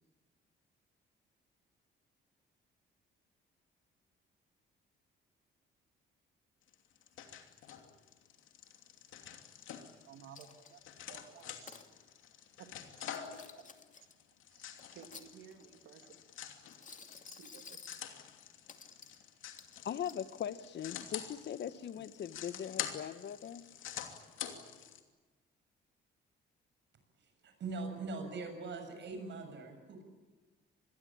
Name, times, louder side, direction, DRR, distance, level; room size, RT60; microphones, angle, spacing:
sound 1, 6.7-25.0, left 10 dB, 85° left, 2.8 m, -47 dB
voice 1, 10.0-11.8 12.6-13.6 14.5-16.1 17.3-17.8 19.4-19.5, right 8 dB, 90° right, 3.0 m, -56 dB
Coin (dropping), 10.3-10.9 11.4-11.9 13.0-14.1 14.8-15.7 16.6-18.1 18.7-19.2 19.6-20.2, left 5 dB, 40° left, 2.4 m, -53 dB
voice 2, 19.8-23.6, left 9 dB, 60° left, 1.3 m, -40 dB
voice 3, 27.4-30.0, right 3 dB, 65° right, 7.0 m, -42 dB
26.5 x 21.0 x 8.8 m
cardioid pair, 90°, 20 cm